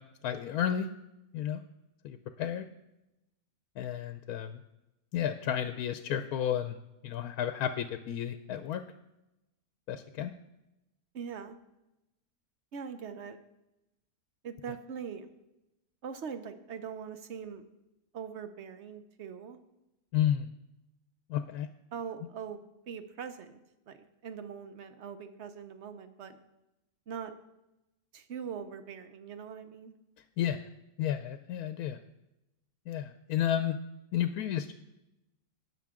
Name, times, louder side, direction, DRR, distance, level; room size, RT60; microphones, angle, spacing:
voice 1, 0.2-0.9 1.3-1.6 2.0-2.6 3.8-4.6 5.1-6.8 7.0-8.8 9.9-10.3 20.1-20.5 21.3-21.7 30.4-30.6 31.0-32.0 32.9-33.8 34.1-34.7, left 10 dB, 80° left, 9 dB, 1.0 m, -32 dB
voice 2, 11.1-11.6 12.7-13.4 14.4-15.3 16.0-17.6 18.1-19.6 21.9-23.6 23.9-26.4 27.1-27.3 28.1-29.9, right 7 dB, 55° right, 10 dB, 0.9 m, -42 dB
17.5 x 5.9 x 3.6 m, 0.93 s
omnidirectional pair, 1.6 m